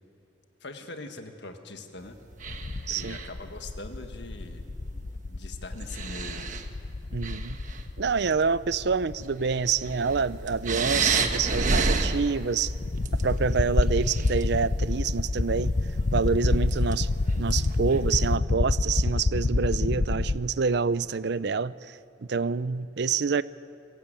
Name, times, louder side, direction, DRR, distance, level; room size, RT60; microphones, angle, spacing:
voice 1, 0.6-2.2 2.9-4.6 5.3-6.4, left 2 dB, 65° left, 6 dB, 1.7 m, -42 dB
sound 1, 2.4-20.4, left 2 dB, 45° left, 0.6 m, -28 dB
sound 2, 2.4-3.5 5.0-5.1 5.7-6.7 7.1-7.9 8.5-8.6 9.2-18.4, right 3 dB, 45° right, 1.2 m, -32 dB
voice 2, 2.9-3.2 7.1-7.6 8.0-12.7 13.2-15.7 16.1-17.1 17.4-21.9 22.3-23.4, right 5 dB, 65° right, 17 dB, 0.5 m, -27 dB
23.0 x 15.5 x 9.0 m, 2.5 s
head